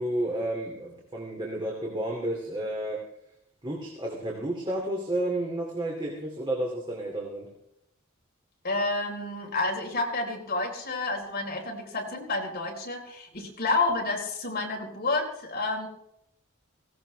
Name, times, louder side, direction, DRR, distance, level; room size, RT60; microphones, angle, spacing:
voice 1, 0.0-3.0 3.6-7.5, right 1 dB, 25° right, -1 dB, 2.5 m, -31 dB
voice 2, 8.6-15.9, left 3 dB, 50° left, 0 dB, 4.2 m, -30 dB
17.5 x 17.0 x 3.4 m, 0.76 s
head